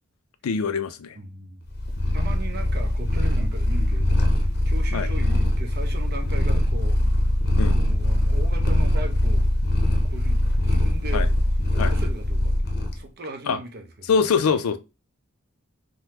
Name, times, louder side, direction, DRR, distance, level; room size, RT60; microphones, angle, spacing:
voice 1, 0.4-1.2 4.9-5.1 7.6-7.8 11.1-11.3 11.8-11.9 13.5-13.6 14.1-14.8, left 5 dB, 90° left, 0.4 m, -23 dB
voice 2, 1.1-1.6 2.1-7.2 7.7-9.5 10.0-11.3 11.7-12.5 13.0-14.2, right 2 dB, 50° right, 0.7 m, -38 dB
Purr, 1.7-13.0, left 1 dB, 50° left, 0.6 m, -22 dB
3.6 x 2.1 x 2.9 m
head